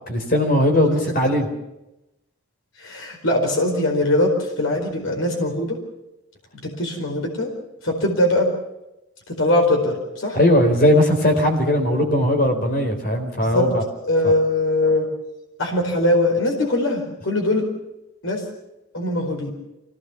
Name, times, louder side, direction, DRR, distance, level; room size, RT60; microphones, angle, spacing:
voice 1, 0.1-1.5 10.3-13.8 14.2-14.3, left 1 dB, 45° left, 4 dB, 4.3 m, -18 dB
voice 2, 2.8-5.8 6.6-7.5 7.8-8.5 9.3-10.4 13.4-15.1 15.6-17.7 18.2-18.4 18.9-19.5, left 1 dB, 70° left, 1 dB, 4.6 m, -21 dB
25.0 x 17.5 x 7.1 m, 0.94 s
head